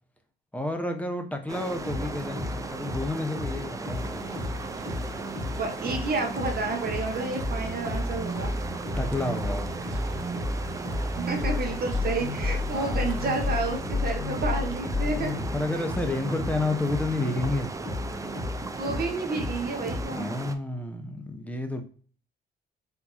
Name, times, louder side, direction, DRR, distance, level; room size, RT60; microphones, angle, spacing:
voice 1, 0.5-4.4 9.0-9.7 12.7-13.0 15.0-17.7 20.1-21.8, left 2 dB, 5° left, 5 dB, 0.8 m, -30 dB
sound 1, 1.5-20.6, right 3 dB, 15° right, 0.4 m, -37 dB
sound 2, 1.7-20.1, left 2 dB, 45° left, 1.7 m, -33 dB
sound 3, 3.9-13.9, right 8 dB, 80° right, 0.5 m, -46 dB
voice 2, 5.5-8.5 11.1-15.3 15.8-15.9 18.8-20.3, right 3 dB, 50° right, 2 dB, 0.9 m, -30 dB
4.5 x 2.7 x 2.3 m, 0.42 s
cardioid pair, 90°, 20 cm